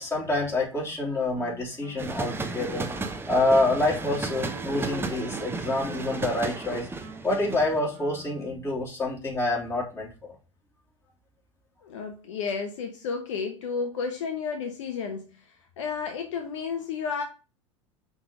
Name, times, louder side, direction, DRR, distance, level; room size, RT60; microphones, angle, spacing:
voice 1, 0.0-2.9 3.3-6.9 7.2-10.1, left 2 dB, 15° left, 3.3 m, -27 dB
Wind instrument woodwind instrument, 1.3-8.8, right 5 dB, 55° right, 1.5 m, -46 dB
sound 1, 2.0-7.8, right 3 dB, 15° right, 0.9 m, -34 dB
voice 2, 11.8-17.2, left 5 dB, 70° left, 0.9 m, -32 dB
5.9 x 3.6 x 5.3 m
figure-of-eight pair, 80°, 16 cm